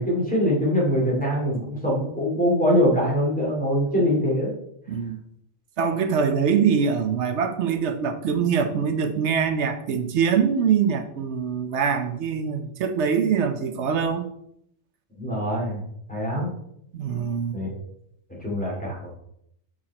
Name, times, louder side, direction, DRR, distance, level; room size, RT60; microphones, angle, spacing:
voice 1, 0.0-4.5 15.2-15.8 16.1-16.5 17.5-17.7 18.4-19.2, equal, 5° left, -4 dB, 2.5 m, -23 dB
voice 2, 5.8-14.3 16.9-17.6, right 6 dB, 65° right, 8 dB, 0.9 m, -23 dB
7.1 x 5.1 x 4.1 m, 0.74 s
omnidirectional pair, 1.3 m